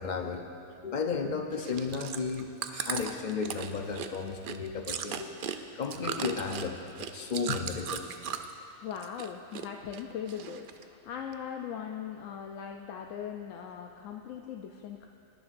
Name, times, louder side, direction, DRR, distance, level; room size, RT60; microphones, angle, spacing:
voice 1, 0.0-5.3 5.7-8.1, left 5 dB, 45° left, 4 dB, 0.7 m, -34 dB
Chewing mastication, 1.5-8.6 8.9-9.7 9.9-10.8 11.3-11.4, right 7 dB, 60° right, 0.5 m, -37 dB
voice 2, 8.8-15.1, left 8 dB, 85° left, 2 dB, 1.0 m, -40 dB
18.0 x 10.5 x 2.5 m, 2.6 s
omnidirectional pair, 1.3 m